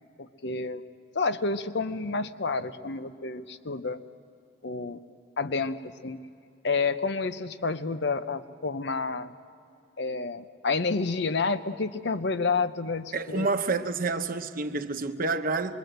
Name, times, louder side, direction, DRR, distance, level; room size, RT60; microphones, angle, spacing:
voice 1, 0.2-0.8 1.1-4.0 4.6-5.0 5.4-6.2 6.6-9.3 10.0-13.5, left 4 dB, 60° left, 0.8 m, -29 dB
voice 2, 13.1-15.8, right 3 dB, 45° right, 0.9 m, -28 dB
25.5 x 22.5 x 8.0 m
head